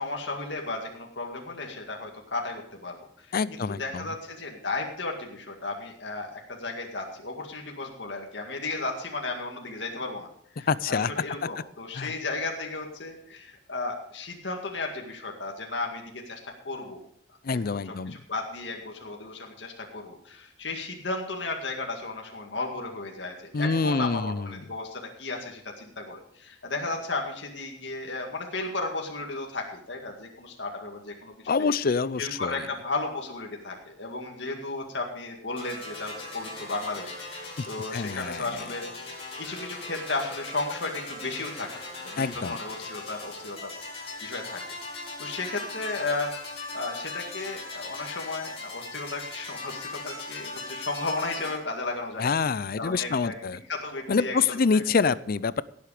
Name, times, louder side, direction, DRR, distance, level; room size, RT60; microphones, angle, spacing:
voice 1, 0.0-10.3 10.5-16.4 16.6-17.0 17.5-31.7 32.2-41.7 42.0-44.6 44.9-46.3 46.7-52.5 52.8-53.4 53.7-55.1, left 3 dB, 70° left, 1 dB, 2.1 m, -34 dB
voice 2, 3.3-4.1 10.7-11.1 11.9-12.1 17.4-18.2 23.5-24.6 31.5-32.6 37.6-37.7 37.9-38.5 42.2-42.6 52.2-53.6 54.1-55.6, left 5 dB, 55° left, 18 dB, 0.5 m, -26 dB
sound 1, 35.6-51.6, left 3 dB, 35° left, 4.6 m, -39 dB
16.5 x 8.3 x 4.9 m, 0.65 s
head